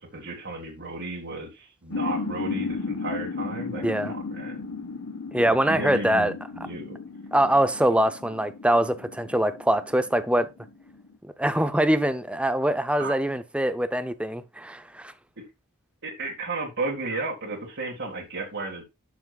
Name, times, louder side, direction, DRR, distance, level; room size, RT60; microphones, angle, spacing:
voice 1, 0.0-4.6 5.4-7.0 13.0-13.2 15.4-15.5 16.0-18.8, right 2 dB, 55° right, 2.0 m, -34 dB
sound 1, 1.9-11.1, left 4 dB, 65° left, 1.3 m, -35 dB
voice 2, 3.8-4.1 5.3-6.3 7.3-10.5 11.4-15.1, right 1 dB, 5° right, 0.6 m, -23 dB
12.0 x 6.2 x 2.4 m
head